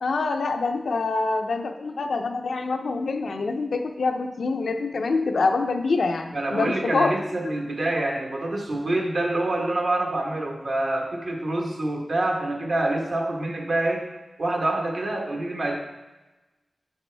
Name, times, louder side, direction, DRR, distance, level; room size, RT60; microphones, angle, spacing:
voice 1, 0.0-7.1, left 3 dB, 85° left, 5 dB, 0.5 m, -25 dB
voice 2, 6.3-14.0 14.4-15.7, right 2 dB, 65° right, 0 dB, 1.3 m, -26 dB
7.2 x 6.8 x 3.3 m, 1.1 s
wide cardioid pair, 85°, 0 cm